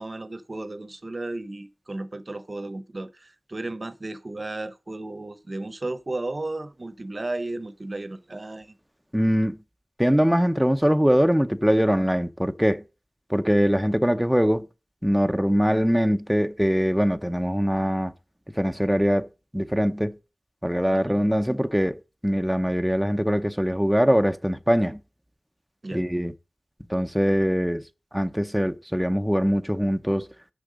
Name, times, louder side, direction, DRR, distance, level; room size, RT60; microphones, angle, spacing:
voice 1, 0.0-8.8 20.9-21.2 25.8-26.0, right 2 dB, 45° right, 0.8 m, -34 dB
voice 2, 9.1-9.6 10.0-12.8 13.3-14.7 15.0-18.1 18.6-19.3 19.5-20.1 20.6-22.0 22.2-25.0 25.9-26.3 26.9-27.8 28.1-30.3, equal, 5° right, 0.8 m, -22 dB
7.9 x 6.5 x 5.1 m
wide cardioid pair, 60°, 0 cm